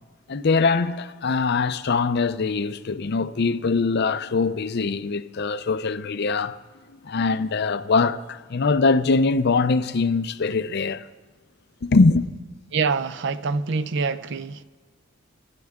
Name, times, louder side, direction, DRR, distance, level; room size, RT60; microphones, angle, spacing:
voice 1, 0.3-6.6 7.0-11.0 11.8-12.3, left 4 dB, 50° left, 0.5 m, -22 dB
voice 2, 12.7-14.6, right 4 dB, 55° right, 0.5 m, -25 dB
28.5 x 10.5 x 3.6 m
head